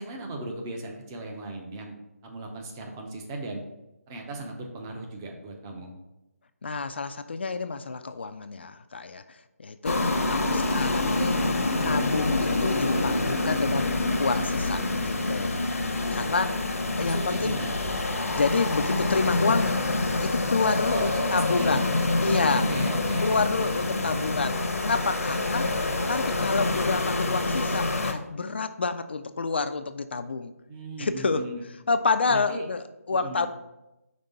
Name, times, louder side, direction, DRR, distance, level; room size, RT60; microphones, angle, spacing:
voice 1, 0.0-1.9 2.2-3.6 4.1-5.9 17.0-18.0 20.9-21.9 22.3-23.4 23.7-24.3 30.7-31.7 32.3-32.6 33.1-33.5, right 2 dB, 15° right, 2 dB, 0.5 m, -37 dB
voice 2, 6.6-10.0 10.3-11.4 11.8-15.6 16.1-16.6 16.9-17.6 18.4-19.7 20.2-21.9 22.2-22.7 23.2-25.7 26.1-30.5 31.0-31.4 31.9-33.5, left 4 dB, 45° left, 10 dB, 0.4 m, -28 dB
sound 1, 9.8-28.1, left 2 dB, 65° left, 0.8 m, -26 dB
sound 2, 22.8-28.3, right 1 dB, 75° right, 1.0 m, -43 dB
5.3 x 3.5 x 5.3 m, 0.95 s
figure-of-eight pair, 160°, 8 cm